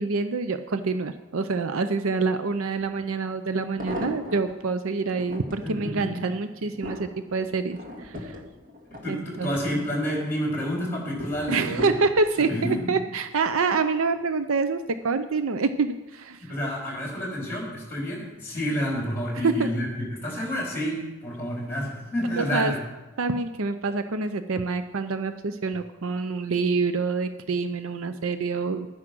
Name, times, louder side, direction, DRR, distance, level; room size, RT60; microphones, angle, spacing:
voice 1, 0.0-8.4 9.1-9.5 11.5-16.5 19.3-19.7 22.4-22.7 23.2-28.9, right 4 dB, 70° right, 10 dB, 0.6 m, -26 dB
sound 1, 2.8-2.9 3.5-4.5 5.0-5.7 6.3-9.7 10.1-10.5 11.2-12.6 13.3-13.7 14.0-14.1, left 1 dB, 40° right, 2.0 m, -37 dB
voice 2, 5.6-6.1 9.0-11.9 12.4-12.9 16.4-22.8, equal, 10° left, -3 dB, 4.2 m, -29 dB
12.0 x 9.8 x 6.0 m, 1.1 s
head